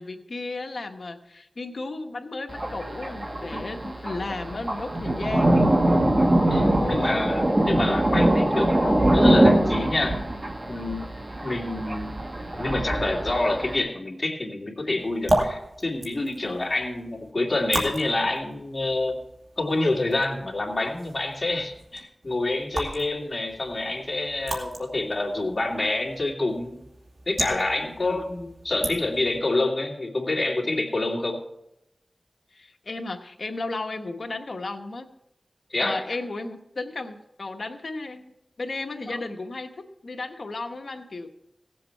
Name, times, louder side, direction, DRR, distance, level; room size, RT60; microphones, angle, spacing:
voice 1, 0.0-5.8 6.6-7.2 28.0-28.2 32.5-35.1 35.8-41.3, left 3 dB, 70° left, 5 dB, 1.1 m, -34 dB
Thunder, 2.5-13.8, right 1 dB, 35° right, 1.4 m, -23 dB
voice 2, 6.5-10.2 10.7-11.1 11.4-12.1 12.6-19.2 19.6-26.8 27.3-31.4 35.7-36.0 39.1-39.2, left 2 dB, 40° left, -1 dB, 2.5 m, -27 dB
sound 1, 15.0-29.4, right 1 dB, 70° right, 2.5 m, -34 dB
17.0 x 7.7 x 4.6 m, 0.84 s
wide cardioid pair, 60°, 0 cm